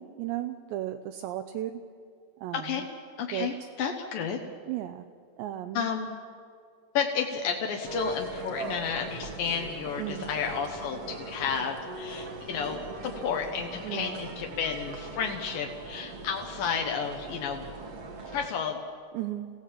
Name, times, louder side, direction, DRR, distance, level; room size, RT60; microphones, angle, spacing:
voice 1, 0.0-1.8 2.4-2.8 3.3-3.7 4.7-5.1 5.4-5.9 10.0-10.3 13.8-14.2 19.1-19.5, right 13 dB, 80° right, 7 dB, 2.7 m, -35 dB
voice 2, 2.5-2.8 3.2-4.4 5.7-6.2 6.9-17.7 18.3-18.8, left 6 dB, 75° left, 2 dB, 2.1 m, -32 dB
sound 1, 7.8-18.5, right 3 dB, 60° right, 1.6 m, -40 dB
27.0 x 16.5 x 7.5 m, 2.2 s
omnidirectional pair, 5.4 m